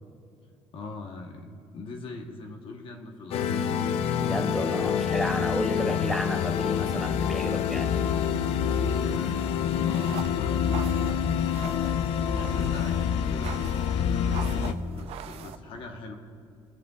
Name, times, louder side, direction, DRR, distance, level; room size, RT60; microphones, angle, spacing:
voice 1, 0.7-3.8 4.7-5.1 7.5-8.1 8.4-11.9 12.3-16.2, left 3 dB, 55° left, 3 dB, 1.0 m, -41 dB
sound 1, 3.3-14.7, left 8 dB, 75° left, 0.5 m, -27 dB
voice 2, 4.2-7.9, equal, ahead, 5 dB, 0.6 m, -32 dB
sound 2, 9.9-15.6, right 11 dB, 75° right, 0.4 m, -43 dB
22.0 x 8.1 x 2.3 m, 2.5 s
cardioid pair, 140°, 10 cm